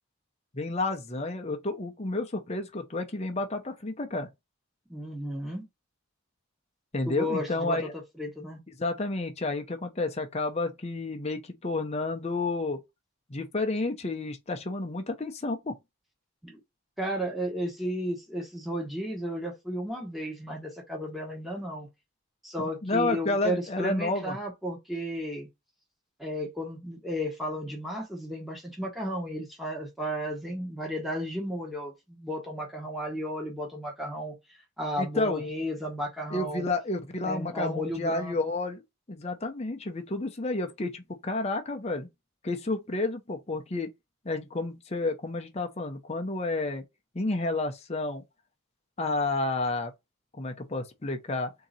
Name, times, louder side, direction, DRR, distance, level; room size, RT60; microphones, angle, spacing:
voice 1, 0.5-4.3 6.9-7.9 8.8-12.8 13.3-15.8 22.6-24.4 35.0-35.4 36.3-38.8 39.1-42.1 42.4-43.9 44.2-46.8 47.1-48.2 49.0-49.9 50.4-51.5, left 2 dB, 30° left, 0.7 m, -30 dB
voice 2, 4.9-5.7 7.0-8.6 16.4-16.6 17.0-21.9 22.4-25.5 26.2-34.4 34.8-36.7 37.2-38.4, equal, ahead, 1.1 m, -33 dB
3.8 x 2.8 x 4.1 m
head